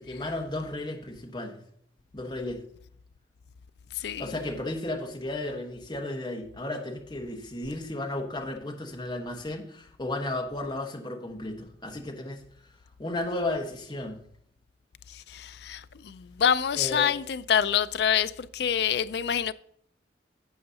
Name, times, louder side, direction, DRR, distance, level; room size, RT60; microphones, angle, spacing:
voice 1, 0.0-1.6 2.1-2.6 4.2-12.4 13.0-14.2 16.7-17.1, left 2 dB, 25° left, 1.2 m, -34 dB
voice 2, 4.0-4.3 15.1-19.5, left 8 dB, 60° left, 0.4 m, -26 dB
12.0 x 7.8 x 2.7 m
head